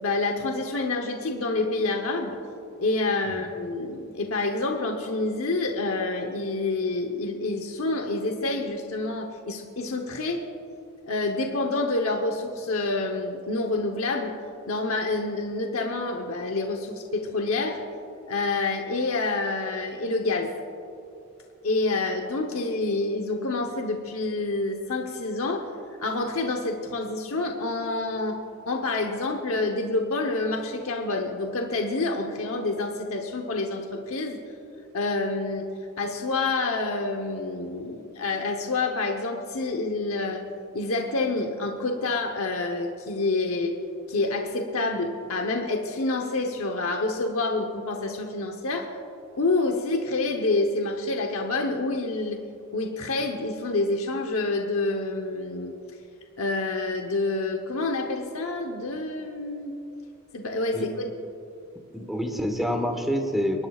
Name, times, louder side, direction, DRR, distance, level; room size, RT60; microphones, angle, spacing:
voice 1, 0.0-2.4 2.8-10.4 11.1-14.3 14.7-17.8 18.3-20.5 21.6-25.7 26.0-34.4 34.9-35.6 36.0-40.4 40.7-43.8 44.1-48.9 49.4-52.4 52.7-55.7 56.4-59.7 60.3-61.1, left 3 dB, 75° left, 2 dB, 1.0 m, -27 dB
voice 2, 61.9-63.7, equal, ahead, 3 dB, 1.2 m, -27 dB
30.0 x 11.5 x 2.4 m, 2.6 s
head